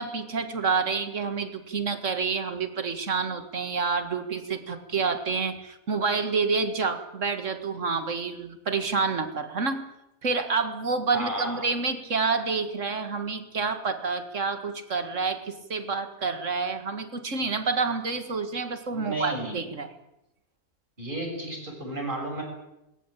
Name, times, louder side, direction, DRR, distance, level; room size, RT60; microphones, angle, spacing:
voice 1, 0.0-9.8 10.2-19.9, right 4 dB, 60° right, 8 dB, 2.3 m, -28 dB
voice 2, 11.1-11.6 18.9-19.6 21.0-22.4, right 1 dB, 35° right, 2 dB, 6.8 m, -32 dB
21.5 x 18.5 x 8.7 m, 0.89 s
omnidirectional pair, 1.5 m